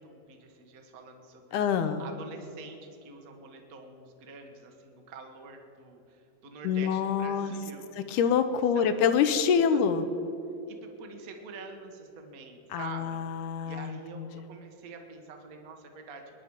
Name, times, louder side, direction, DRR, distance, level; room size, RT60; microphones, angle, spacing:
voice 1, 0.0-1.6 2.0-7.9 8.7-9.0 9.7-9.8 10.7-13.2 13.6-16.2, right 4 dB, 65° right, 4 dB, 0.8 m, -46 dB
voice 2, 1.5-2.0 6.6-7.5 8.0-10.1 12.7-14.4, left 7 dB, 80° left, 10 dB, 2.1 m, -26 dB
22.5 x 10.5 x 4.8 m, 2.9 s
omnidirectional pair, 3.8 m